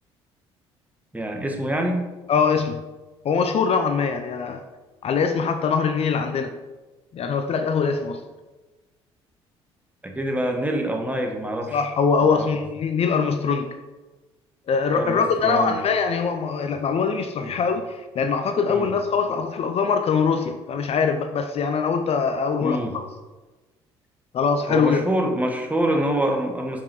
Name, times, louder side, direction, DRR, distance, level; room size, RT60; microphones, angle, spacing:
voice 1, 1.1-2.0 10.0-11.8 12.2-12.5 14.9-15.8 17.4-17.5 18.7-18.9 22.6-22.9 24.7-26.8, right 1 dB, 10° right, 2 dB, 1.7 m, -25 dB
voice 2, 2.3-2.8 3.2-4.6 5.0-6.5 7.1-8.2 11.7-13.7 14.7-23.1 24.3-25.0, left 5 dB, 45° left, 7 dB, 0.7 m, -23 dB
7.1 x 5.6 x 4.8 m, 1.2 s
hypercardioid pair, 55°, 14 cm